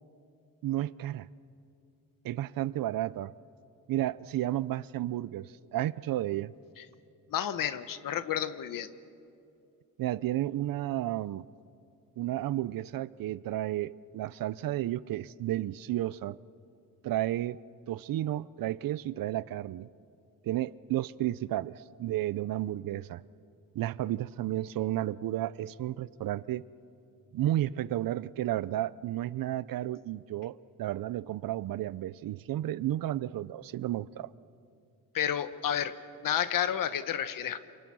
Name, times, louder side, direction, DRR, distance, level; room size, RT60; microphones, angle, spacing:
voice 1, 0.6-1.3 2.2-3.3 3.9-6.5 10.0-11.5 12.2-16.4 17.0-17.6 17.9-19.9 20.4-23.2 23.7-26.6 27.3-34.3, right 14 dB, 70° right, 0.6 m, -32 dB
voice 2, 7.3-8.9 35.1-35.9 36.2-37.6, left 9 dB, 65° left, 1.1 m, -31 dB
28.0 x 27.5 x 6.2 m
wide cardioid pair, 170°, 35 cm